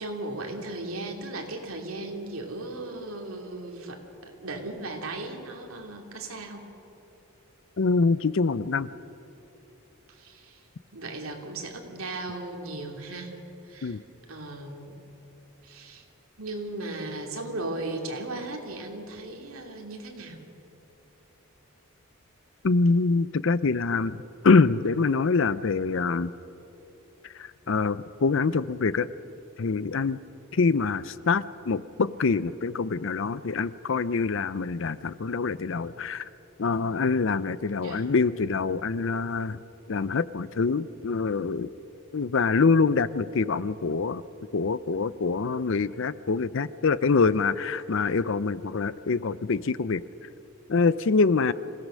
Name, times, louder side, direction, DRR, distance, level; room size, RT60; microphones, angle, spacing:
voice 1, 0.0-6.7 10.1-10.6 10.9-13.3 13.6-14.0 14.3-15.0 15.6-16.0 16.4-20.4 37.8-38.1, right 2 dB, 70° right, 2 dB, 2.7 m, -36 dB
voice 2, 7.8-8.9 13.8-14.0 22.6-26.3 27.2-29.1 29.6-30.2 30.5-36.3 36.6-39.6 39.9-41.7 42.1-44.2 44.5-50.0 50.7-51.5, left 4 dB, 60° left, 17 dB, 0.5 m, -25 dB
27.0 x 16.5 x 6.3 m, 2.9 s
head